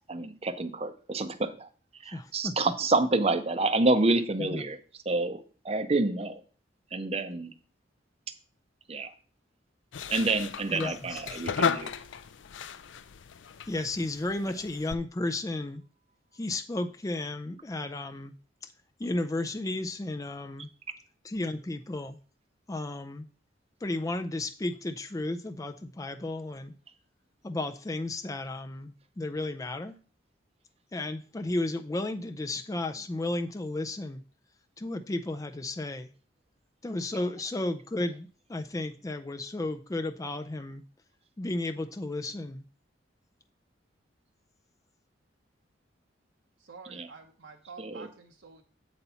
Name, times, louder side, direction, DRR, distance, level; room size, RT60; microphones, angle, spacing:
voice 1, 0.0-1.7 2.0-4.8 5.1-6.4 6.9-7.5 8.9-9.1 10.1-11.9 46.9-47.1 47.8-48.1, right 2 dB, 30° right, 10 dB, 0.6 m, -28 dB
voice 2, 2.1-2.5 4.4-4.6 10.7-11.2 13.7-15.8 16.3-18.3 19.0-20.7 21.2-22.2 22.7-23.3 23.8-26.7 27.4-30.0 30.9-34.2 34.8-36.1 36.8-40.8 41.4-42.6, left 2 dB, 20° left, 7 dB, 0.4 m, -33 dB
sound 1, 9.9-14.9, left 6 dB, 80° left, 0.4 m, -35 dB
voice 3, 46.6-48.6, right 4 dB, 80° right, 2 dB, 0.9 m, -48 dB
8.0 x 4.2 x 5.5 m, 0.39 s
head